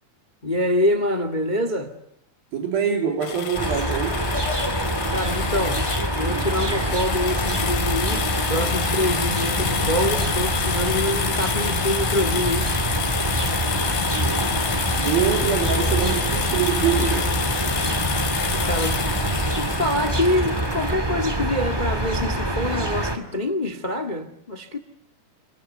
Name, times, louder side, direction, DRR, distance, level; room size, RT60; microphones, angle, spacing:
voice 1, 0.4-1.9 5.1-5.8 6.1-12.7 18.5-19.1 19.6-24.8, left 1 dB, 35° left, 0.6 m, -25 dB
voice 2, 2.5-4.3 15.0-17.3, right 7 dB, 70° right, 4.5 m, -24 dB
sound 1, 3.2-20.9, left 7 dB, 65° left, 3.8 m, -28 dB
sound 2, 3.5-23.2, right 1 dB, 10° right, 1.1 m, -25 dB
27.5 x 23.0 x 8.2 m
omnidirectional pair, 4.4 m